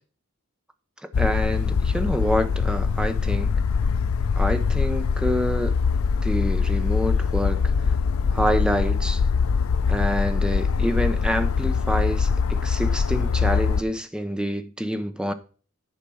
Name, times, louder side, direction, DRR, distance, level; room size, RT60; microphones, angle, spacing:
sound 1, 1.1-13.8, left 5 dB, 70° left, 0.4 m, -23 dB
voice 1, 1.2-3.6 4.4-5.7 6.2-7.7 8.3-9.2 9.9-15.3, equal, 5° right, 0.6 m, -27 dB
10.0 x 5.0 x 6.1 m
head